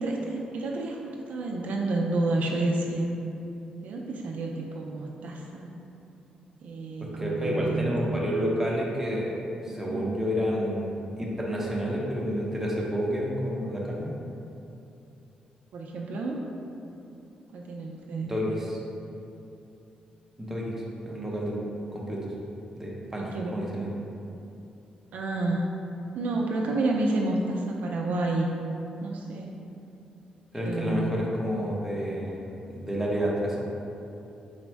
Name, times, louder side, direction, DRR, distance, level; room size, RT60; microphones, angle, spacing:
voice 1, 0.0-3.1 3.8-5.7 6.6-8.0 9.7-10.1 15.7-16.4 17.5-18.4 23.3-23.7 25.1-25.7 26.1-28.5 29.0-29.5 30.6-31.1, right 2 dB, 75° right, -1 dB, 0.4 m, -30 dB
voice 2, 7.2-9.3 9.6-14.1 18.2-18.8 20.4-20.8 21.0-21.6 21.9-22.2 22.8-24.0 30.5-32.4 32.7-33.6, equal, 10° right, -4 dB, 0.7 m, -29 dB
4.2 x 2.0 x 4.5 m, 2.8 s
cardioid pair, 95°, 3 cm